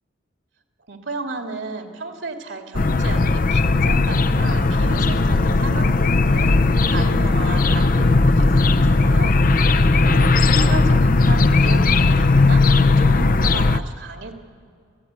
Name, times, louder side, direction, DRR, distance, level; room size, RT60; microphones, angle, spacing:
voice 1, 0.9-6.6 6.9-14.3, right 3 dB, 70° right, 4 dB, 2.4 m, -34 dB
sound 1, 2.7-13.8, left 3 dB, 45° left, 0.6 m, -17 dB
25.5 x 16.5 x 9.5 m, 2.3 s
head